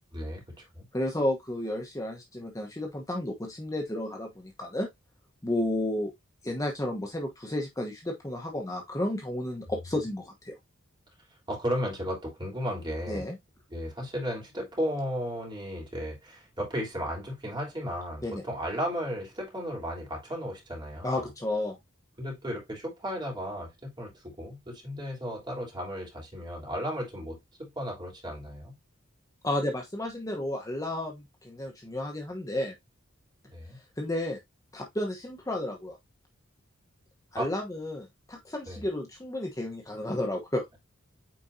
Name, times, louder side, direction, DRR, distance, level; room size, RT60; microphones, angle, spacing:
voice 1, 0.1-0.8 11.5-13.2 13.7-21.3 22.2-28.7 33.5-33.8 37.3-37.5 38.7-38.8, equal, 20° right, 3.3 m, -34 dB
voice 2, 0.9-4.9 5.4-6.1 6.4-10.5 13.1-13.4 18.2-18.4 21.0-21.8 29.4-32.7 34.0-34.4 34.7-36.0 37.3-40.6, left 1 dB, 15° left, 1.0 m, -32 dB
8.7 x 4.3 x 2.7 m
head